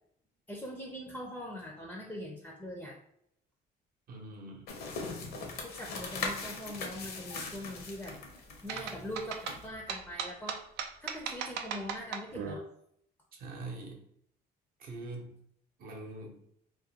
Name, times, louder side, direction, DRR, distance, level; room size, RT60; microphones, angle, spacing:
voice 1, 0.5-3.0 5.6-8.2 8.6-10.7 11.0-12.7, left 1 dB, 10° left, -1 dB, 0.4 m, -42 dB
voice 2, 4.1-4.7 13.3-14.0 14.8-15.4 15.8-16.4, right 2 dB, 60° right, 1 dB, 0.8 m, -43 dB
sound 1, 4.7-9.7, left 4 dB, 70° left, 0.7 m, -40 dB
sound 2, 8.7-12.5, right 7 dB, 80° right, 0.4 m, -37 dB
2.4 x 2.2 x 2.7 m, 0.71 s
cardioid pair, 110°, 17 cm